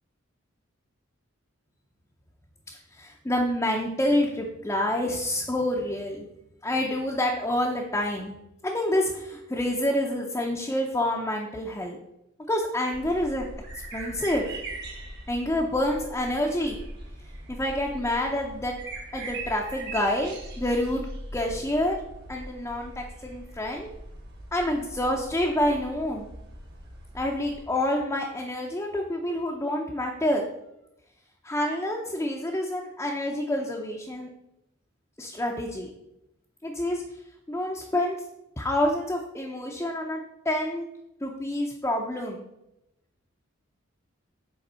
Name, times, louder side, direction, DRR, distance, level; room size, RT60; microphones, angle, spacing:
voice 1, 2.9-6.3 6.6-8.3 8.6-12.0 12.5-13.5 13.9-14.5 15.3-16.8 17.5-18.7 19.1-21.1 21.3-22.0 22.3-23.9 24.5-26.3 27.1-30.5 31.4-34.3 35.2-35.9 36.6-37.0 37.5-38.2 38.6-40.2 40.4-40.9 41.2-42.4, left 1 dB, 15° left, -1 dB, 0.6 m, -27 dB
sound 1, 12.9-27.6, right 2 dB, 55° right, 1.5 m, -41 dB
7.8 x 3.5 x 5.5 m, 0.87 s
head